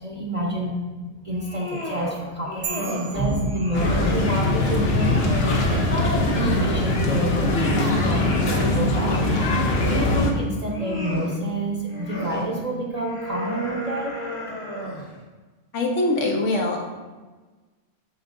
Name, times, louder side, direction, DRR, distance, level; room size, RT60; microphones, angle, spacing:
voice 1, 0.0-9.2 9.5-14.2, right 1 dB, 35° right, -2 dB, 0.8 m, -28 dB
sound 1, 1.3-2.2 2.4-3.1 3.5-4.4 4.8-6.9 7.3-8.7 9.4-10.3 10.6-11.4 11.9-12.4 13.0-15.1, left 1 dB, 25° left, 1.0 m, -33 dB
sound 2, 2.6-4.4, right 7 dB, 70° right, 1.1 m, -37 dB
sound 3, 3.7-10.3, left 2 dB, 60° left, 1.0 m, -22 dB
voice 2, 15.7-16.9, left 2 dB, 80° left, 0 dB, 1.3 m, -23 dB
6.7 x 6.7 x 2.6 m, 1.3 s
omnidirectional pair, 1.2 m